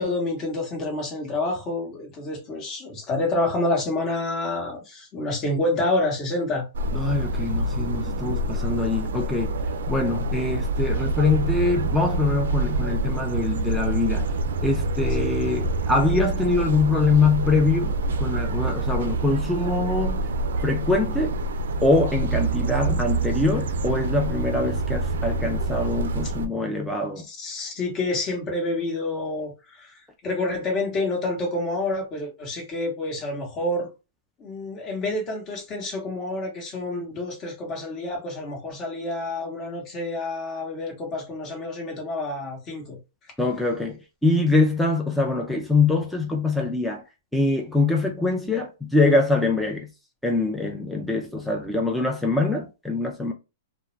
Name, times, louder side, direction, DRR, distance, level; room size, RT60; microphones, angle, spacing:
voice 1, 0.0-6.6 15.2-15.3 27.3-33.9 34.4-43.0, left 2 dB, 30° left, 1.0 m, -28 dB
sound 1, 6.7-26.5, right 2 dB, 80° right, 0.3 m, -26 dB
voice 2, 6.9-9.5 9.9-14.3 14.6-20.3 20.6-21.4 21.8-27.2 43.4-47.0 47.3-49.9 50.2-53.3, left 3 dB, 5° left, 0.4 m, -24 dB
2.3 x 2.1 x 3.1 m
hypercardioid pair, 135°, 0 cm